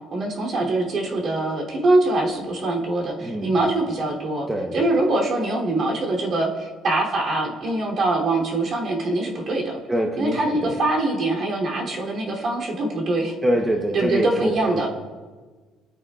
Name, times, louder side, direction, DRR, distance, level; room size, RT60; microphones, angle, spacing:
voice 1, 0.1-4.5 4.7-9.8 10.2-13.3 13.9-14.9, right 2 dB, 40° right, -2 dB, 3.0 m, -23 dB
voice 2, 4.5-4.8 9.9-10.8 13.4-14.9, equal, 10° right, 0 dB, 0.9 m, -24 dB
25.5 x 9.8 x 2.4 m, 1.4 s
cardioid pair, 150°, 0 cm